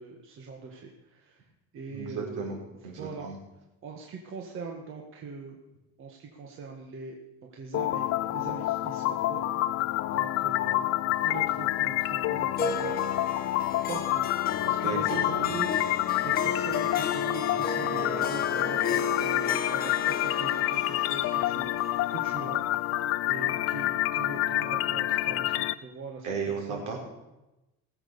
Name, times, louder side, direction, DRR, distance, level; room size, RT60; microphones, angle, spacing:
voice 1, 0.0-1.4 1.7-2.6 3.0-3.3 3.8-5.5 6.0-7.2 7.5-8.1 8.3-9.5 10.1-10.9 11.2-13.0 13.9-15.9 16.2-22.6 23.3-26.8, right 4 dB, 40° right, 1 dB, 1.7 m, -41 dB
voice 2, 1.9-2.6 2.8-3.4 14.8-15.0 15.4-15.6 26.2-27.0, right 5 dB, 75° right, 0 dB, 4.8 m, -34 dB
sound 1, 7.7-25.7, left 15 dB, 50° left, 0.5 m, -28 dB
Harp, 12.6-23.2, left 5 dB, 30° left, 1.3 m, -34 dB
19.0 x 7.8 x 7.0 m, 0.99 s
cardioid pair, 160°, 31 cm